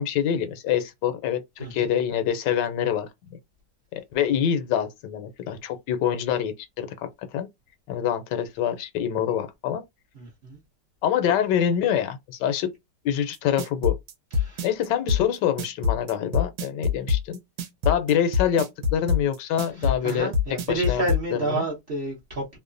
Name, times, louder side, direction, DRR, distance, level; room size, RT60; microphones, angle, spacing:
voice 1, 0.0-3.4 3.9-7.5 7.9-9.8 11.0-12.7 13.0-14.0 14.6-17.4 17.8-20.3 20.7-21.0 21.3-21.7, left 9 dB, 80° left, 1.2 m, -25 dB
voice 2, 10.1-10.6 14.4-14.7 19.7-22.6, right 2 dB, 45° right, 0.8 m, -30 dB
sound 1, 13.3-21.2, left 5 dB, 80° right, 1.3 m, -24 dB
3.0 x 2.1 x 2.5 m
omnidirectional pair, 1.9 m